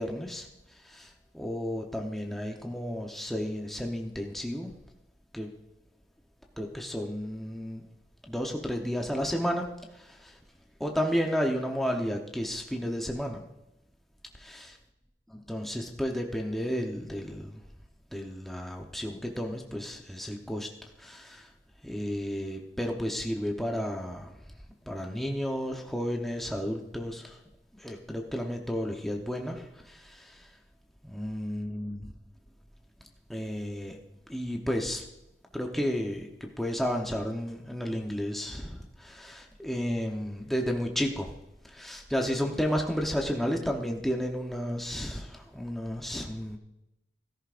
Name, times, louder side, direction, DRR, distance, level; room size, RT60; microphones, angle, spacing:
voice 1, 0.0-4.7 5.3-5.5 6.6-7.9 8.2-10.4 10.8-13.4 14.3-14.8 15.3-17.6 18.1-20.7 21.0-21.5 21.8-24.4 24.8-27.4 27.7-30.5 31.0-32.1 33.3-34.0 34.3-35.0 35.5-41.3 41.6-46.6, equal, ahead, 1 dB, 0.9 m, -32 dB
16.0 x 14.0 x 2.5 m, 0.89 s
head